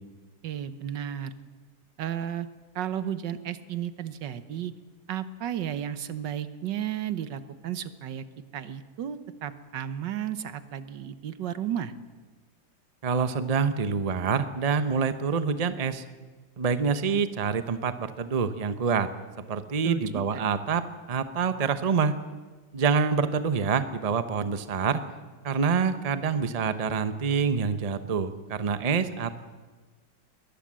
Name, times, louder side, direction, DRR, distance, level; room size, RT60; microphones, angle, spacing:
voice 1, 0.4-1.3 2.0-2.5 2.7-4.7 5.1-8.2 8.5-11.9 19.8-20.2, right 10 dB, 80° right, 13 dB, 1.7 m, -33 dB
voice 2, 13.0-16.0 16.6-19.1 19.5-22.2 22.7-25.0 25.4-29.4, right 5 dB, 30° right, 11 dB, 0.8 m, -26 dB
22.5 x 19.0 x 7.6 m, 1.3 s
omnidirectional pair, 1.9 m